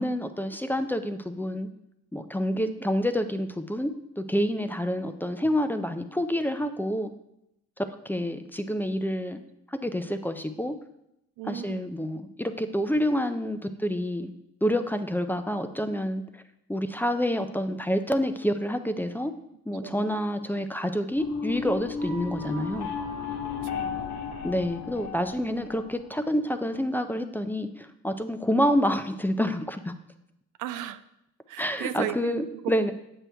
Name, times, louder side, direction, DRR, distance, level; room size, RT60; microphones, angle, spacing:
voice 1, 0.0-1.7 2.1-7.1 7.8-9.4 9.7-10.8 11.5-14.3 14.6-16.4 16.7-19.3 19.7-22.9 24.4-29.9 31.6-32.9, equal, 5° left, 9 dB, 0.4 m, -28 dB
voice 2, 2.6-2.9 11.4-11.8 19.8-20.2 23.6-24.1 25.5-25.6 30.6-31.0 31.5-32.7, right 12 dB, 90° right, 12 dB, 0.5 m, -36 dB
sound 1, 21.1-26.2, left 5 dB, 70° left, 1.4 m, -34 dB
7.8 x 6.1 x 3.4 m, 0.83 s
cardioid pair, 90°, 30 cm